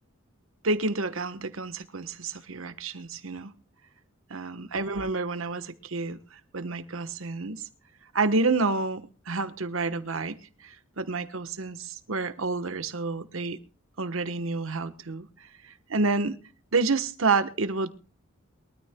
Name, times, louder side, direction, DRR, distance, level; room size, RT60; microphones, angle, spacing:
voice 1, 0.6-3.5 4.3-7.7 8.1-10.4 10.6-13.6 14.0-16.4 16.7-17.9, right 3 dB, 80° right, 12 dB, 1.2 m, -29 dB
22.5 x 13.0 x 2.2 m, 0.36 s
head